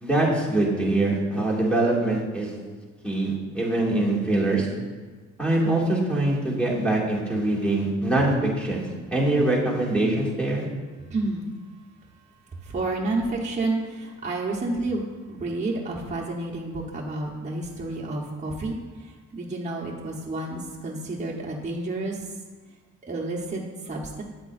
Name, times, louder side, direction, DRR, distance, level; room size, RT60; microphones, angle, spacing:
voice 1, 0.0-2.6 3.0-4.7 5.4-8.9 9.1-10.7, right 2 dB, 5° left, -6 dB, 2.3 m, -23 dB
voice 2, 11.1-11.5 12.6-15.0 15.3-22.2 23.1-24.2, right 2 dB, 25° right, -3 dB, 1.0 m, -30 dB
8.5 x 7.9 x 2.6 m, 1.4 s
cardioid pair, 90°, 30 cm